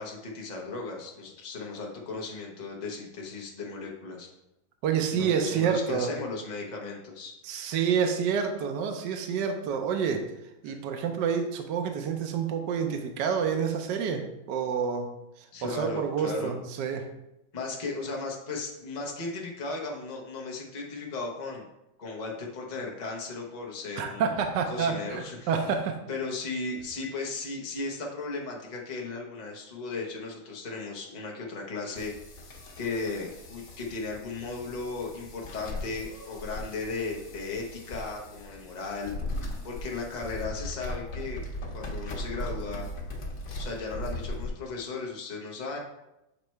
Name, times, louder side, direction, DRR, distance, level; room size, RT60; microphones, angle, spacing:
voice 1, 0.0-4.3 5.1-7.7 10.6-10.7 15.5-16.5 17.5-21.7 22.0-24.4 24.7-25.5 26.1-32.1 32.8-39.1 39.6-41.4 41.7-42.9 43.6-45.8, left 3 dB, 75° left, -1 dB, 0.4 m, -36 dB
voice 2, 4.8-6.1 7.4-10.2 10.6-15.1 15.6-17.0 24.0-26.0, right 7 dB, 70° right, 4 dB, 1.1 m, -28 dB
sound 1, 31.9-44.5, left 1 dB, 50° left, 1.2 m, -38 dB
6.7 x 3.1 x 4.5 m, 0.89 s
omnidirectional pair, 2.3 m